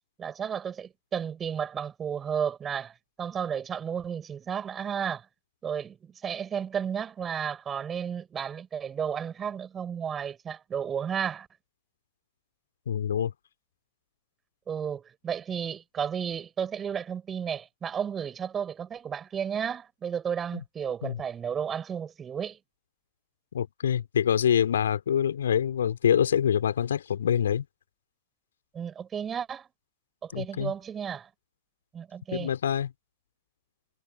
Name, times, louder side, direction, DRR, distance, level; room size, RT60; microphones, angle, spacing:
voice 1, 0.2-5.2 5.6-11.5 14.7-22.6 28.7-29.7 30.2-31.3 31.9-32.5, right 7 dB, 20° right, 7.5 m, -33 dB
voice 2, 12.9-13.3 20.5-20.6 21.0-21.2 23.5-27.6 30.3-30.7 32.3-32.9, left 9 dB, 65° left, 3.5 m, -25 dB
figure-of-eight pair, 90°, 0 cm